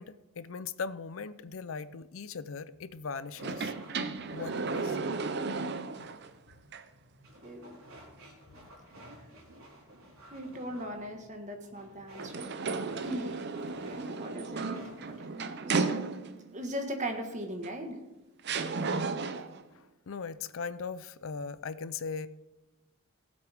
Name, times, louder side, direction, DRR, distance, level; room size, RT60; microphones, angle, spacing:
voice 1, 0.0-3.7 4.3-5.0 5.9-6.1 19.7-22.3, left 5 dB, 65° left, 15 dB, 0.5 m, -39 dB
sound 1, 3.4-6.3 6.7-6.8 12.2-16.5 17.6-17.7 18.4-19.6, right 4 dB, 50° right, 0.6 m, -34 dB
sound 2, 3.4-15.4, right 1 dB, 80° right, 4.1 m, -53 dB
voice 2, 7.4-7.8 10.3-12.5 12.9-13.5 13.8-14.8 15.3-15.8 16.5-18.0, equal, 35° right, 4 dB, 1.5 m, -39 dB
18.5 x 7.8 x 3.5 m, 1.0 s
head